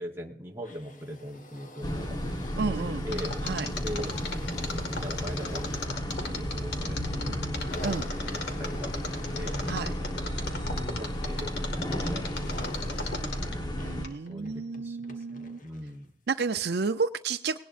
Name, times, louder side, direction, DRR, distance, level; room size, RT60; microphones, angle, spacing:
voice 1, 0.0-2.2 2.6-3.4 3.8-4.2 4.8-7.5 8.0-9.6 10.3-13.1 14.3-16.1, equal, 15° right, 0 dB, 1.0 m, -41 dB
sound 1, 0.6-16.1 16.9-17.0, left 1 dB, 45° left, 1.4 m, -48 dB
sound 2, 1.8-14.1, equal, 25° left, 1.2 m, -33 dB
voice 2, 2.6-3.1 3.4-3.7 7.8-8.1 9.7-9.9 13.8-15.6 16.3-17.6, right 4 dB, 65° right, 8 dB, 0.5 m, -31 dB
Mechanisms, 3.1-13.7 14.0-14.1, left 3 dB, 65° left, 2.0 m, -36 dB
18.5 x 18.5 x 2.6 m, 0.75 s
head